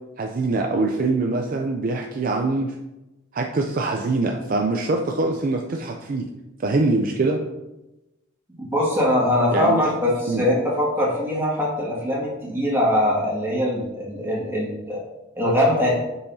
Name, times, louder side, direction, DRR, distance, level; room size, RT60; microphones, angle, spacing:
voice 1, 0.2-2.7 3.3-6.3 6.6-7.4 9.5-9.8 10.3-10.4, right 3 dB, 45° right, 2 dB, 0.4 m, -23 dB
voice 2, 8.6-15.0 15.4-15.9, left 1 dB, 10° right, -5 dB, 1.9 m, -22 dB
6.9 x 5.6 x 2.7 m, 0.99 s
head